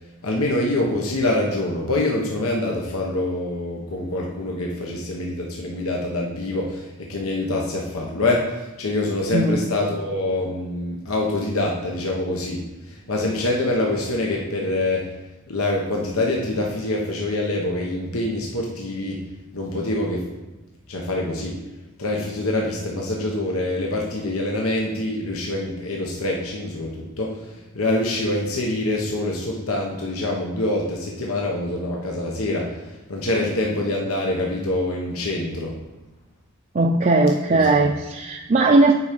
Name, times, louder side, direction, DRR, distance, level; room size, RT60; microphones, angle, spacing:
voice 1, 0.2-15.2 15.5-19.2 19.5-20.3 20.9-21.6 22.0-35.7 37.5-37.7, left 2 dB, 85° left, -1 dB, 1.1 m, -25 dB
voice 2, 36.7-38.9, right 2 dB, 35° right, 1 dB, 0.5 m, -18 dB
8.4 x 4.8 x 5.2 m, 1.1 s
head